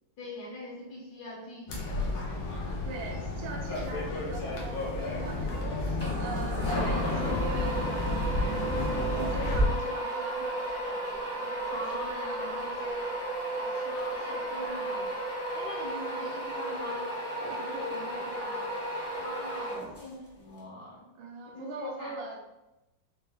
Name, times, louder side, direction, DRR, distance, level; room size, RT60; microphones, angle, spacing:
voice 1, 0.2-2.3 11.7-12.6 13.9-15.2 15.5-17.1 19.1-21.1 21.6-22.2, left 1 dB, 65° left, -4 dB, 1.0 m, -42 dB
sound 1, 1.7-9.7, left 2 dB, 90° left, 1.7 m, -31 dB
voice 2, 2.8-8.9 9.2-11.8 12.1-13.2 13.5-15.0 17.4-18.7 21.1-22.4, right 2 dB, 80° right, -1 dB, 1.4 m, -42 dB
sound 2, 6.0-20.3, right 1 dB, 15° left, 0.5 m, -34 dB
5.0 x 2.2 x 3.4 m, 0.95 s
omnidirectional pair, 2.3 m